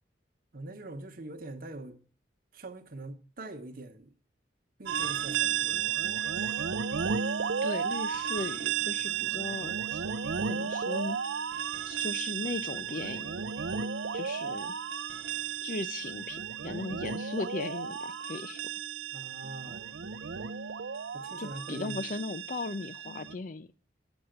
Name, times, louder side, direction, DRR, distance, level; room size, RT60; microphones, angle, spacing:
voice 1, 0.5-2.0 2.5-4.1 4.8-6.0 19.1-20.1 21.1-22.0, right 2 dB, 50° right, 1.0 m, -43 dB
sound 1, 4.9-23.3, right 7 dB, 75° right, 0.5 m, -33 dB
voice 2, 7.6-10.0 10.5-11.2 11.9-13.4 13.8-13.9 14.1-14.7 15.6-18.7 21.4-23.7, left 3 dB, 45° left, 0.5 m, -37 dB
9.0 x 7.1 x 7.8 m
head